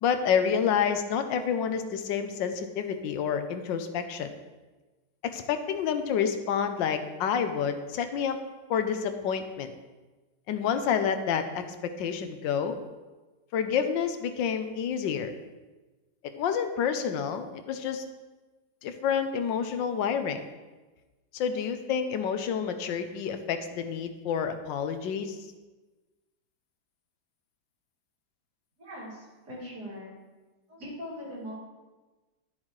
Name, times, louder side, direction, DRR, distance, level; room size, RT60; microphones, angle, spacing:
voice 1, 0.0-4.3 5.2-8.4 8.7-9.7 10.5-12.8 13.5-15.3 16.4-18.0 18.8-20.4 21.3-25.4, left 7 dB, 85° left, 8 dB, 1.4 m, -29 dB
voice 2, 28.8-30.2 30.7-31.5, equal, 60° right, -6 dB, 3.4 m, -41 dB
12.5 x 7.3 x 3.2 m, 1.2 s
omnidirectional pair, 2.0 m